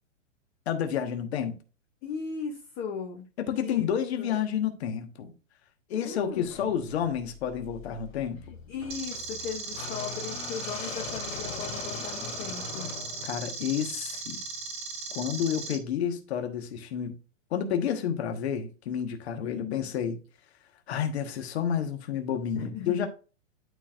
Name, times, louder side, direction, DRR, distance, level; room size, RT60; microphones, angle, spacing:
voice 1, 0.6-1.6 3.4-5.3 5.9-8.4 13.2-14.4 15.1-17.2 17.5-20.2 20.9-23.1, left 8 dB, 55° left, 1.4 m, -30 dB
voice 2, 2.0-3.3 3.6-3.9 4.2-4.4 6.0-6.5 8.4-12.9 19.4-19.9 22.6-23.1, left 6 dB, 20° left, 0.7 m, -37 dB
sound 1, 6.3-14.4, left 6 dB, 90° left, 2.4 m, -42 dB
sound 2, 8.9-15.7, right 4 dB, 15° right, 1.0 m, -38 dB
12.0 x 4.5 x 2.5 m
hypercardioid pair, 160°, 38 cm